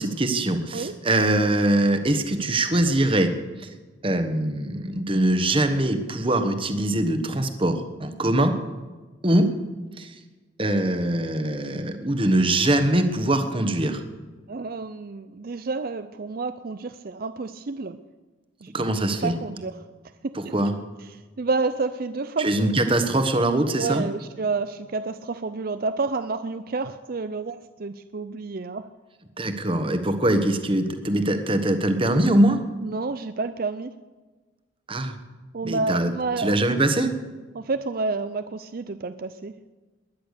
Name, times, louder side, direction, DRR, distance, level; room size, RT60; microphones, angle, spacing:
voice 1, 0.0-3.3 4.0-8.5 9.2-9.5 10.0-10.1 10.6-14.0 18.7-19.3 20.3-20.7 22.4-24.0 29.4-32.6 34.9-35.1 35.6-36.1 36.4-37.1, right 1 dB, 25° right, 8 dB, 1.3 m, -22 dB
voice 2, 14.5-18.0 18.6-18.7 19.2-19.8 20.2-20.5 21.0-22.8 23.8-28.9 32.8-33.9 35.5-36.8 37.5-39.5, right 3 dB, 50° right, 11 dB, 0.5 m, -29 dB
20.5 x 10.0 x 6.7 m, 1.3 s
head